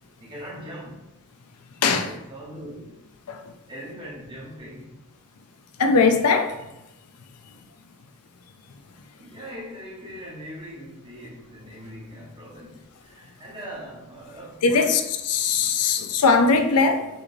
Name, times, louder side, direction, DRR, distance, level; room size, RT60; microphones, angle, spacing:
voice 1, 0.2-1.1 1.8-3.0 3.7-4.9 9.2-15.0 15.8-15.9, equal, 20° right, 1.2 m, -40 dB
voice 2, 1.8-2.1 3.3-3.4 5.8-6.6 14.6-17.1, left 4 dB, 90° left, 0.5 m, -20 dB
6.1 x 3.1 x 2.6 m
head